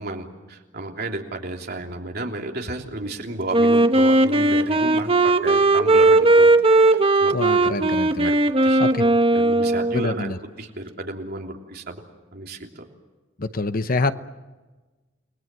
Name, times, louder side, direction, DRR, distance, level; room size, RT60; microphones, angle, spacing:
voice 1, 0.0-6.5 6.8-7.8 8.2-8.4 8.6-12.0 12.3-12.8, right 2 dB, 55° right, 1 dB, 3.3 m, -33 dB
Wind instrument woodwind instrument, 3.5-10.2, right 2 dB, 30° right, 1.1 m, -17 dB
voice 2, 7.3-8.3 8.8-9.1 9.9-10.4 13.4-14.1, left 3 dB, 50° left, 11 dB, 1.0 m, -26 dB
30.0 x 20.5 x 7.7 m, 1.2 s
head